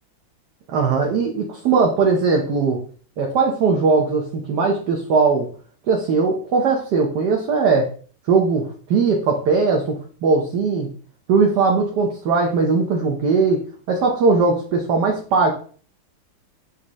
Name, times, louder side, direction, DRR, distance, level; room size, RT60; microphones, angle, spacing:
voice 1, 0.7-2.8 3.2-5.5 5.9-7.9 8.3-9.9 10.2-10.9 11.3-13.6 13.9-15.5, right 4 dB, 60° right, 1 dB, 1.4 m, -19 dB
9.8 x 3.3 x 3.1 m, 0.43 s
omnidirectional pair, 2.4 m